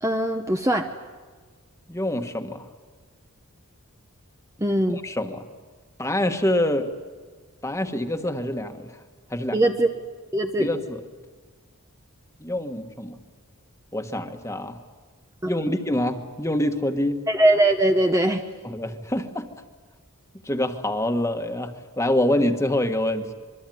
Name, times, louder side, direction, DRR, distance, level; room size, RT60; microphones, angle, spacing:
voice 1, 0.0-0.9 4.6-5.0 9.5-9.9 10.3-10.7 15.4-15.5 17.3-18.4, right 1 dB, 15° right, 5 dB, 0.8 m, -21 dB
voice 2, 1.9-2.7 4.9-5.5 6.0-6.9 7.6-8.9 9.3-9.6 10.6-11.0 12.4-13.2 13.9-14.8 15.4-17.3 18.6-19.5 20.4-23.3, left 1 dB, 15° left, 6 dB, 1.4 m, -26 dB
25.5 x 23.0 x 9.3 m, 1.5 s
head